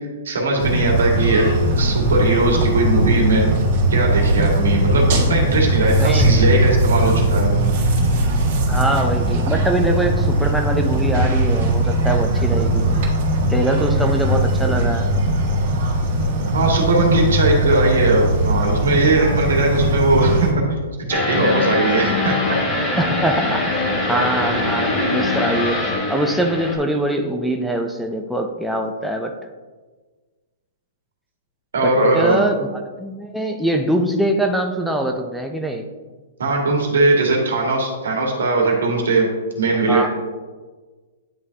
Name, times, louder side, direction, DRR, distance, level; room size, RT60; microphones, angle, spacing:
voice 1, 0.2-1.5 1.8-3.5 3.9-7.8 16.5-20.5 21.1-22.6 31.7-32.4 36.4-39.3 39.6-40.1, right 2 dB, 80° right, 0 dB, 1.8 m, -19 dB
sound 1, 0.6-20.5, right 1 dB, 50° right, 1.8 m, -19 dB
voice 2, 8.7-12.9 13.5-15.1 23.0-23.7 24.1-25.8 26.1-29.3 31.8-32.7 33.0-35.9 39.9-40.1, right 1 dB, ahead, 2 dB, 0.4 m, -23 dB
sound 2, 21.1-26.8, left 2 dB, 20° left, 1.0 m, -22 dB
9.9 x 3.7 x 2.8 m, 1.4 s
hypercardioid pair, 145°, 0 cm